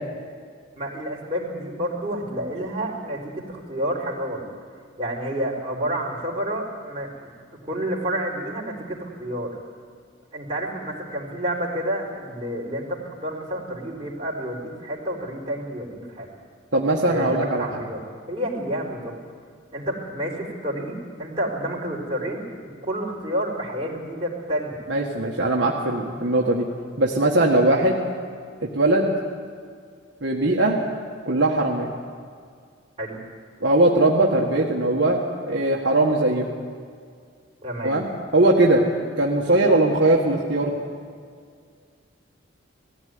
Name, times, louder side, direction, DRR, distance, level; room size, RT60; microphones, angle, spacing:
voice 1, 0.8-4.5 5.0-7.3 7.6-9.6 10.3-16.3 17.0-18.0 18.3-19.1 19.7-22.4 22.8-24.9 33.0-33.2 37.6-38.0, equal, 30° right, -4 dB, 4.1 m, -29 dB
voice 2, 16.7-17.8 24.9-26.7 27.0-28.0 28.6-29.1 30.2-30.8 31.2-31.9 33.6-36.4 37.8-38.9 39.2-40.7, right 2 dB, 60° right, -2 dB, 1.7 m, -20 dB
18.5 x 15.0 x 9.6 m, 2.1 s
head